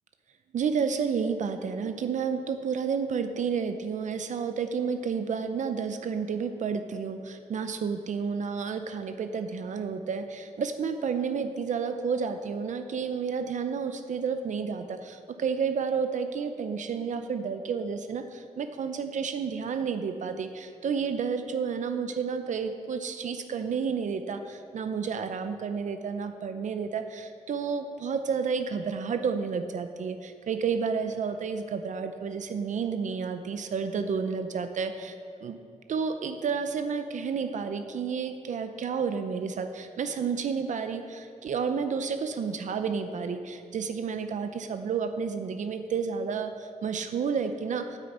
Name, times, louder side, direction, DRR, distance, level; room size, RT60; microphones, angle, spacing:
voice 1, 0.5-35.2 35.4-35.6 35.9-48.0, right 6 dB, 65° right, 8 dB, 0.6 m, -31 dB
9.4 x 6.5 x 8.0 m, 2.6 s
wide cardioid pair, 165°, 14 cm